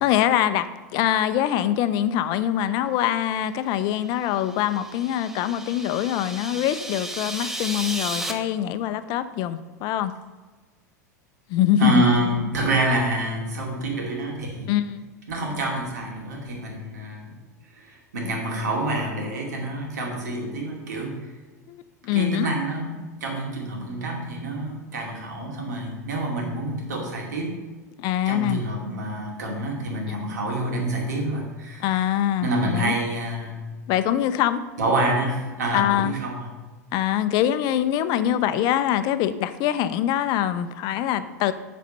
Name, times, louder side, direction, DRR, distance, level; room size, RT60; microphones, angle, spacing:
voice 1, 0.0-0.7 0.9-10.1 11.5-12.0 14.7-15.1 21.7-21.8 22.0-22.5 28.0-28.6 30.1-30.3 31.8-32.9 33.9-34.6 35.7-36.1 36.9-41.5, left 11 dB, 50° left, 12 dB, 0.5 m, -23 dB
sound 1, 4.2-8.3, right 1 dB, 5° right, 0.8 m, -34 dB
voice 2, 11.8-14.7 15.3-17.4 17.7-21.4 22.1-27.6 28.3-32.1 32.4-33.6 34.8-36.5, right 1 dB, 75° right, 0 dB, 2.4 m, -27 dB
8.4 x 4.3 x 6.5 m, 1.3 s
hypercardioid pair, 90°, 9 cm